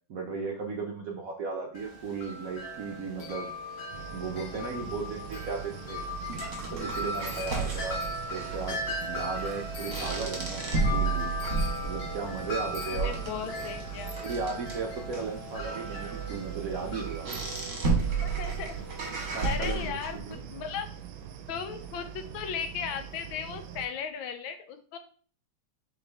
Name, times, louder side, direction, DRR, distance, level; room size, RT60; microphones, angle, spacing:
voice 1, 0.1-3.5 4.1-6.0 6.7-8.0 8.3-11.3 11.8-13.2 14.2-17.3 18.7-20.4, right 4 dB, 65° right, 1 dB, 0.8 m, -36 dB
Wind chime, 1.8-19.7, left 1 dB, 55° left, 0.7 m, -38 dB
sound 1, 3.9-23.9, right 8 dB, 85° right, 1.4 m, -44 dB
sound 2, 5.3-20.3, right 4 dB, 45° right, 1.3 m, -33 dB
voice 2, 12.8-14.1 18.2-18.7 19.4-20.9 21.5-25.0, left 7 dB, 85° left, 8 dB, 1.4 m, -36 dB
4.1 x 3.6 x 3.3 m, 0.43 s
omnidirectional pair, 2.1 m